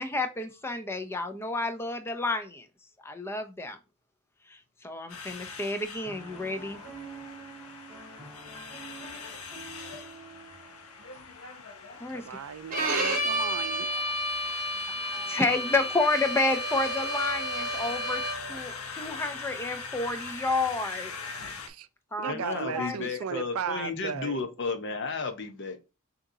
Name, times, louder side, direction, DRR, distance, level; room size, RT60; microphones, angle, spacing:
voice 1, 0.0-2.7 3.0-3.8 4.8-6.8 12.0-12.2 15.3-18.2 18.5-21.1 22.1-22.4 22.7-23.0, left 2 dB, 10° left, 0.5 m, -30 dB
sound 1, 5.1-21.7, left 4 dB, 90° left, 0.9 m, -42 dB
Piano, 6.0-11.3, right 3 dB, 10° right, 2.1 m, -47 dB
voice 2, 12.1-13.9 21.7-21.9 22.2-24.5, right 7 dB, 75° right, 0.4 m, -36 dB
Bowed string instrument, 12.7-18.6, equal, 40° right, 1.0 m, -31 dB
voice 3, 22.3-25.8, left 4 dB, 55° left, 0.8 m, -33 dB
6.3 x 2.9 x 2.7 m
head